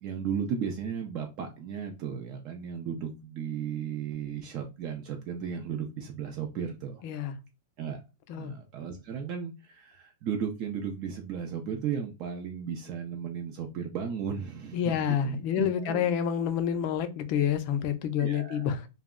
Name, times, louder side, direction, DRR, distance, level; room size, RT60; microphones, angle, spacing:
voice 1, 0.0-7.0 7.8-8.0 8.3-16.1 18.2-18.8, right 7 dB, 35° right, 0.4 m, -35 dB
voice 2, 7.0-7.4 8.3-8.5 14.7-18.9, left 8 dB, 40° left, 0.4 m, -28 dB
2.2 x 2.0 x 3.5 m
supercardioid pair, 160°, 0 cm